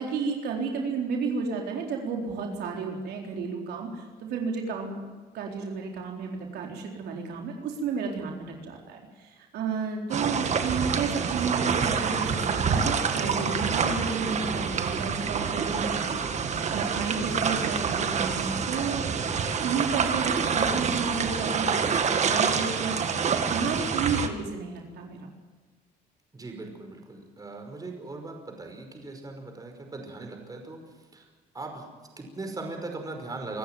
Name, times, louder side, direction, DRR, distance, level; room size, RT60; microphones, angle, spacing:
voice 1, 0.0-5.0 5.3-16.0 16.6-21.8 22.1-23.0 23.4-25.3, right 5 dB, 75° right, 1 dB, 3.9 m, -32 dB
sound 1, 10.1-24.3, right 6 dB, 40° right, 1.9 m, -27 dB
voice 2, 26.3-30.8 31.1-31.3 31.5-31.9 32.2-33.6, right 3 dB, 20° right, 4 dB, 5.4 m, -39 dB
26.0 x 14.5 x 9.3 m, 1.4 s
cardioid pair, 110°, 17 cm